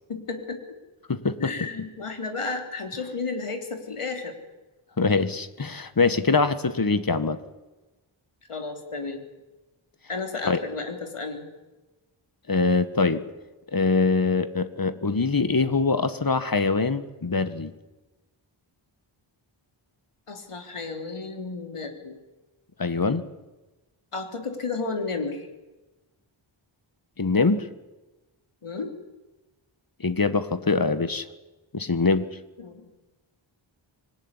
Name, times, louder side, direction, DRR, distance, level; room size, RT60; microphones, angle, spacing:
voice 1, 0.1-0.6 1.4-4.4 8.5-9.2 10.1-11.5 20.3-22.2 24.1-25.5 28.6-28.9 32.6-32.8, left 4 dB, 90° left, 5 dB, 3.7 m, -32 dB
voice 2, 1.1-1.5 5.0-7.4 10.4-10.6 12.5-13.2 13.7-17.7 22.8-23.2 27.2-27.7 30.0-31.3 31.7-32.3, left 4 dB, 45° left, 12 dB, 1.7 m, -23 dB
26.0 x 19.5 x 9.9 m, 1.1 s
wide cardioid pair, 80°, 50 cm